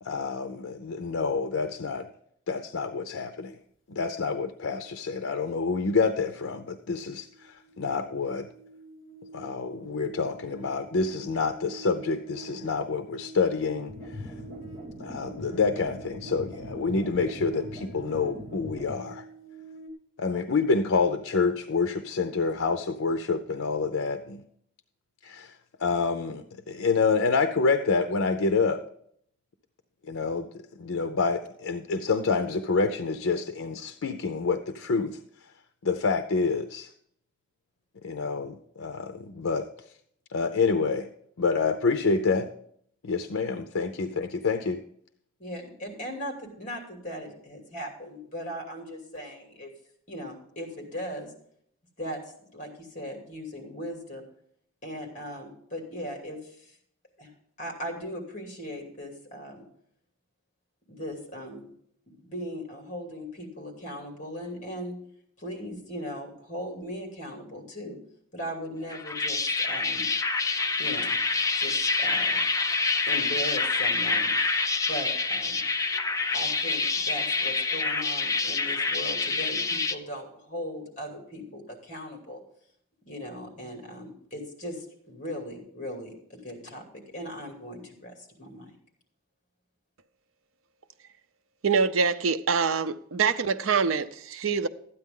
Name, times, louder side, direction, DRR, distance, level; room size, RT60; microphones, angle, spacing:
voice 1, 0.0-2.1 2.5-3.6 3.9-8.5 9.3-14.3 15.0-19.2 20.2-24.4 25.2-25.5 25.8-28.8 30.0-30.5 30.8-35.2 35.8-36.9 38.0-39.7 40.3-41.1 41.4-42.5 43.0-44.8, left 4 dB, 85° left, 0.6 m, -27 dB
sound 1, 6.3-6.4 6.7-19.9, right 3 dB, 55° left, 1.7 m, -47 dB
sound 2, 13.9-18.9, left 1 dB, 40° right, 4.8 m, -42 dB
voice 2, 45.4-49.7 50.1-51.3 52.0-52.2 52.5-54.2 54.8-56.7 57.2-57.3 57.6-59.6 60.9-61.7 62.1-65.0 65.4-68.0 68.3-70.1 70.8-71.2 71.6-72.5 73.1-74.3 74.9-75.7 76.3-82.4 83.1-88.1 88.4-88.7, equal, 35° left, 2.7 m, -38 dB
sound 3, 68.9-80.0, left 4 dB, 15° left, 0.4 m, -27 dB
voice 3, 91.6-94.7, right 5 dB, 80° right, 0.6 m, -25 dB
12.5 x 9.4 x 3.7 m
head